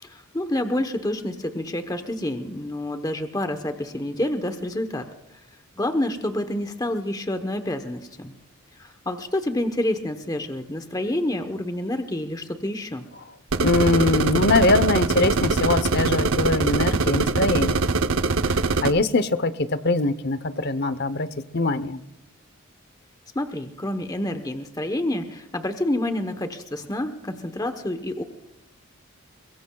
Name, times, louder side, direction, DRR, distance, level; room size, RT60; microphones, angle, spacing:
voice 1, 0.0-5.1 5.8-8.3 8.8-13.1 23.3-28.2, left 1 dB, 15° left, 7 dB, 1.0 m, -28 dB
sound 1, 13.5-18.9, right 3 dB, 75° right, 0.7 m, -22 dB
voice 2, 13.6-17.8 18.4-18.5 18.8-22.0, left 2 dB, 50° left, 13 dB, 0.8 m, -22 dB
23.0 x 22.5 x 2.3 m, 0.92 s
head